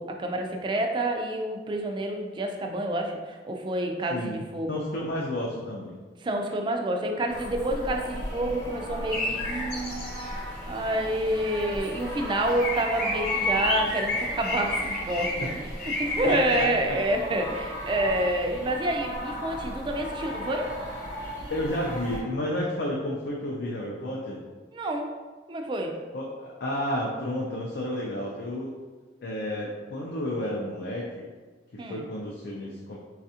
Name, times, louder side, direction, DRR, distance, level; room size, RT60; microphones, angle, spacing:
voice 1, 0.0-4.8 6.2-10.0 10.3-10.4 10.7-20.7 24.7-25.1 25.5-26.0 31.8-32.0, right 1 dB, 25° right, 2 dB, 0.3 m, -28 dB
voice 2, 4.1-6.0 15.4-15.5 16.3-16.7 21.5-24.4 26.1-28.7 29.2-31.3 31.9-33.0, left 1 dB, 65° left, -3 dB, 0.5 m, -31 dB
sound 1, 7.3-22.2, equal, 15° left, 0.7 m, -37 dB
sound 2, 9.1-10.6 10.9-11.0 11.4-11.7 11.9-16.7, left 2 dB, 40° left, 1.0 m, -30 dB
4.1 x 2.4 x 2.7 m, 1.3 s
head